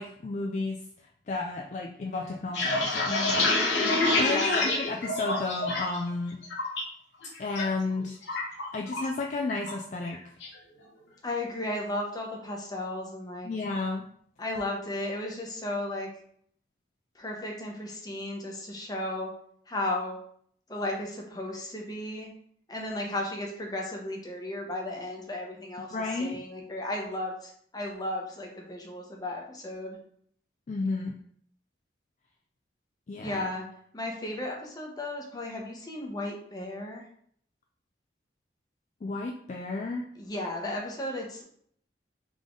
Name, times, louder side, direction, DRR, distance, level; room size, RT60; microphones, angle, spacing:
voice 1, 0.0-3.5 4.0-6.4 7.4-8.2 8.7-10.2 13.4-14.1 25.9-26.4 30.7-31.1 33.1-33.5 39.0-40.1, left 3 dB, 40° left, 1 dB, 0.3 m, -32 dB
sound 1, 2.3-6.0 6.3-6.8 7.2-7.6 7.9-9.2 9.5-9.7 10.1-10.5, left 2 dB, 75° left, 1.0 m, -27 dB
voice 2, 4.2-4.7 11.2-13.5 14.4-16.1 17.1-19.3 19.7-20.2 20.7-22.3 22.7-30.0 33.2-33.6 33.9-37.1 40.2-41.4, left 1 dB, 20° left, 0 dB, 0.8 m, -34 dB
3.6 x 3.6 x 3.7 m, 0.64 s
head